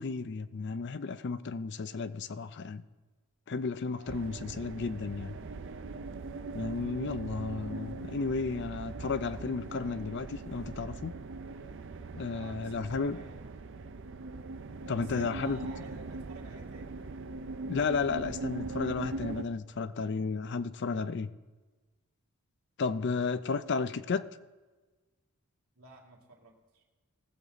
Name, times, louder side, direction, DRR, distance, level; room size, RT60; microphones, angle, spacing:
voice 1, 0.0-2.8 3.5-5.4 6.5-11.1 12.1-13.2 14.9-15.6 17.7-21.3 22.8-24.3, left 4 dB, 50° left, 14 dB, 0.4 m, -33 dB
voice 2, 3.9-4.3 12.3-13.6 14.9-17.0 25.7-26.8, right 3 dB, 80° right, -1 dB, 2.3 m, -52 dB
sound 1, 4.1-19.4, right 3 dB, 55° right, 0.6 m, -41 dB
19.0 x 7.6 x 4.0 m, 1.3 s
head